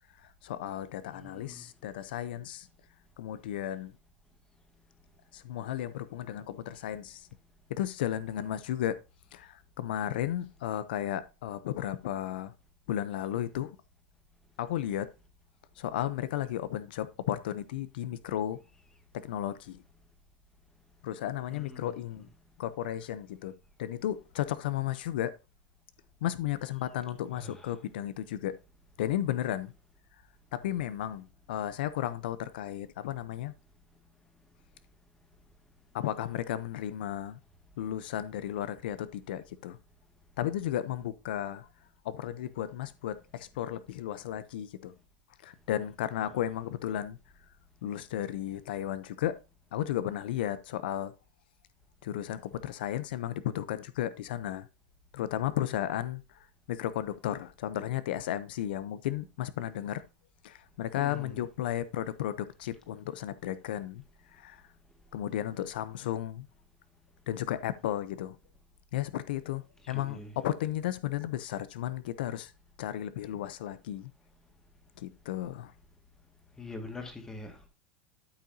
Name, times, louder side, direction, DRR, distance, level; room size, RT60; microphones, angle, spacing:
voice 1, 0.2-2.7 3.2-3.9 5.3-7.3 7.7-9.0 9.3-12.5 12.9-13.8 14.6-15.1 15.8-18.6 19.1-19.8 21.0-22.3 22.6-23.5 23.8-25.3 26.2-28.6 29.0-29.7 30.5-33.5 35.9-37.4 37.8-39.8 40.4-41.7 42.0-44.9 45.4-47.2 47.8-49.4 49.7-51.1 52.0-54.7 55.1-60.0 60.4-64.0 64.3-64.6 65.1-66.5 67.3-68.4 68.9-72.5 72.8-74.1 75.0-75.7, left 12 dB, 85° left, 0.5 m, -34 dB
voice 2, 1.1-1.6 21.5-22.0 27.3-27.7 61.0-61.4 69.8-70.3 76.6-77.7, left 2 dB, 10° left, 1.8 m, -44 dB
12.5 x 5.7 x 2.6 m
supercardioid pair, 140°, 5 cm